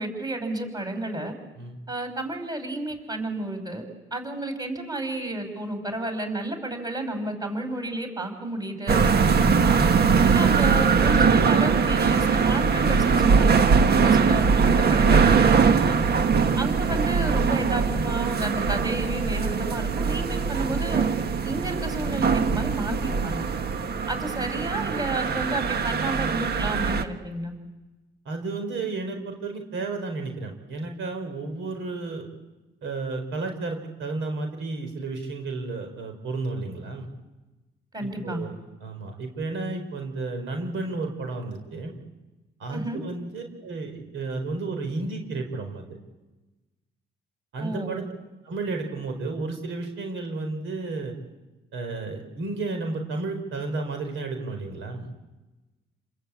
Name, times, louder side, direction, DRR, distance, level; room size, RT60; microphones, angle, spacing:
voice 1, 0.0-1.3 1.9-3.8 4.1-9.8 10.3-16.0 16.6-21.1 21.4-23.5 24.1-27.5 37.9-38.4 42.7-43.0 47.6-48.0, right 1 dB, 20° right, 6 dB, 5.5 m, -31 dB
sound 1, 8.9-27.0, right 5 dB, 55° right, 1.6 m, -21 dB
voice 2, 28.2-32.3 32.8-37.1 38.0-38.5 38.8-41.9 42.6-45.9 47.5-48.0 48.4-51.1 51.7-55.1, right 3 dB, 75° right, 5 dB, 4.7 m, -32 dB
29.5 x 21.5 x 8.5 m, 1.1 s
cardioid pair, 90°, 20 cm